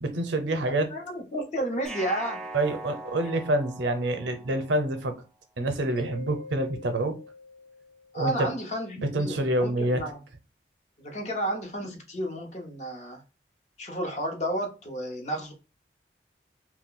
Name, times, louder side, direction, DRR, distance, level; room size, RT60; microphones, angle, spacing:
voice 1, 0.0-0.9 2.5-5.1 5.6-7.2 8.1-8.5 9.0-10.0, right 1 dB, 90° right, 8 dB, 0.6 m, -27 dB
voice 2, 0.9-2.4 8.1-10.2 11.0-13.2 13.8-15.5, right 1 dB, 40° left, 2 dB, 0.7 m, -32 dB
sound 1, 1.8-4.9, right 2 dB, 5° left, 0.3 m, -41 dB
Mallet percussion, 6.0-8.5, left 3 dB, 80° left, 0.8 m, -45 dB
2.3 x 2.2 x 3.6 m, 0.32 s
head